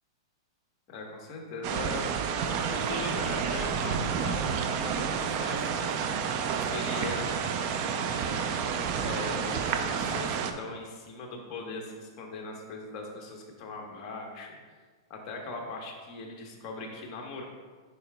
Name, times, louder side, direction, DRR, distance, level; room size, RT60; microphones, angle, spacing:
voice 1, 0.9-2.4 2.7-4.5 4.8-5.9 6.5-8.4 9.0-14.6 15.1-17.4, left 2 dB, 35° left, 0 dB, 1.1 m, -40 dB
sound 1, 1.6-10.5, right 6 dB, 40° right, 0.4 m, -30 dB
8.6 x 4.9 x 2.2 m, 1.5 s
hypercardioid pair, 145°, 2 cm